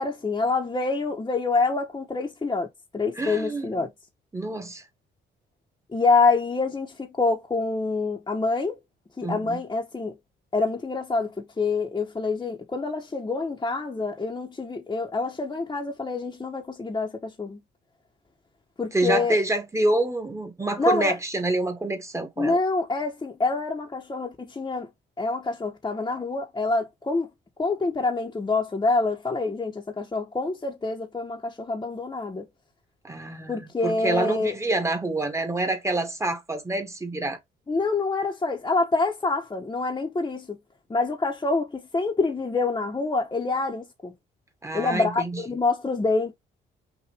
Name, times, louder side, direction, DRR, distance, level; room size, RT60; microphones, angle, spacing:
voice 1, 0.0-2.7 2.9-3.9 5.9-8.8 9.2-10.2 10.5-17.6 18.8-19.4 20.8-21.1 22.4-24.9 25.2-27.3 27.6-32.5 33.5-34.6 37.7-40.6 40.9-44.1 44.7-46.3, left 3 dB, 20° left, 1.0 m, -26 dB
voice 2, 3.2-3.9 4.3-4.8 9.2-9.6 18.9-22.6 33.0-37.4 44.6-45.4, right 2 dB, 15° right, 1.4 m, -27 dB
5.9 x 2.5 x 3.5 m
cardioid pair, 90°, 20 cm